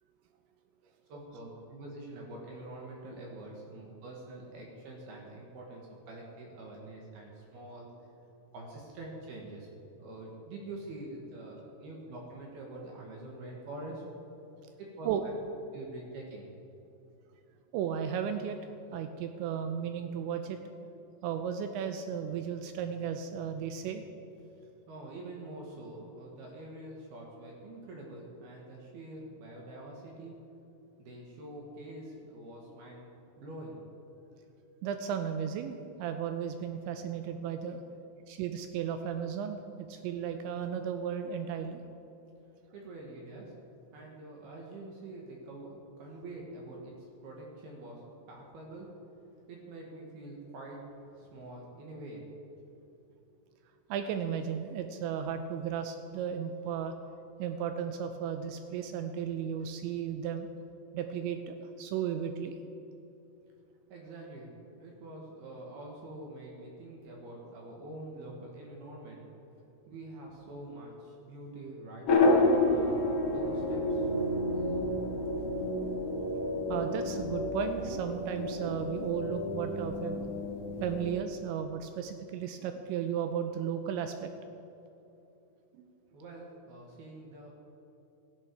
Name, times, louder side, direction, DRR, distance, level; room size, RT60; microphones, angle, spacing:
voice 1, 1.1-7.9 8.5-9.7 10.0-14.0 14.8-15.3 15.7-16.5 24.9-30.3 31.0-33.1 33.4-33.8 42.7-43.5 43.9-46.9 47.2-48.0 48.3-48.9 49.5-50.8 51.1-52.3 63.9-64.5 64.8-69.2 69.9-72.1 72.4-74.0 74.5-74.9 86.1-87.5, right 2 dB, 60° right, -1 dB, 3.2 m, -45 dB
voice 2, 17.7-18.6 18.9-20.6 21.2-24.0 34.8-37.8 38.3-41.8 53.9-56.9 57.4-60.5 60.9-62.6 76.7-80.2 80.8-84.3 85.8-85.9, right 8 dB, 85° right, 7 dB, 2.7 m, -35 dB
sound 1, 72.1-81.1, left 2 dB, 55° left, 1.8 m, -30 dB
16.5 x 15.5 x 4.7 m, 2.9 s
omnidirectional pair, 5.9 m